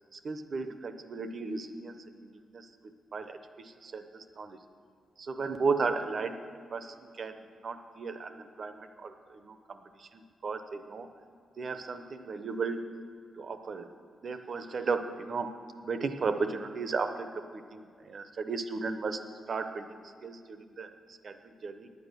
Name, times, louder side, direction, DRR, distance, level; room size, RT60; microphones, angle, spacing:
voice 1, 0.1-2.7 3.1-4.6 5.2-6.4 6.7-11.1 11.6-12.8 13.4-13.9 14.2-15.5 15.8-19.2 19.5-21.9, right 4 dB, 45° right, 8 dB, 0.7 m, -35 dB
9.6 x 9.1 x 6.6 m, 2.1 s
wide cardioid pair, 160°, 0 cm